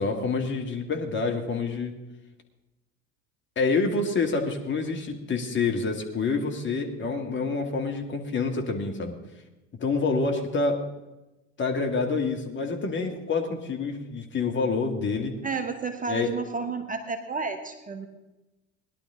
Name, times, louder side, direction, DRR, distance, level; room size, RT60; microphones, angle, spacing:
voice 1, 0.0-2.0 3.6-9.2 9.8-10.8 11.6-15.4 16.1-16.3, left 4 dB, 30° left, 3 dB, 2.1 m, -27 dB
voice 2, 15.4-18.1, right 4 dB, 20° right, 6 dB, 1.3 m, -31 dB
18.5 x 11.5 x 3.7 m, 1.0 s
figure-of-eight pair, 70°, 37 cm